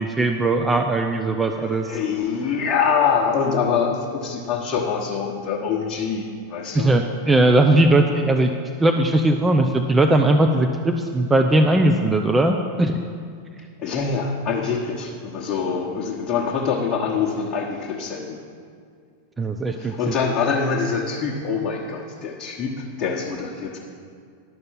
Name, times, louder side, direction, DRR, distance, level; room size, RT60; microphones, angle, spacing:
voice 1, 0.0-2.0 6.7-8.5 8.8-13.0 19.4-20.1, right 2 dB, 10° right, 5 dB, 0.5 m, -19 dB
voice 2, 1.6-6.9 13.8-18.4 19.7-22.7 23.0-23.8, left 6 dB, 30° left, -4 dB, 1.2 m, -24 dB
11.0 x 6.6 x 7.3 m, 2.2 s
figure-of-eight pair, 90°, 0 cm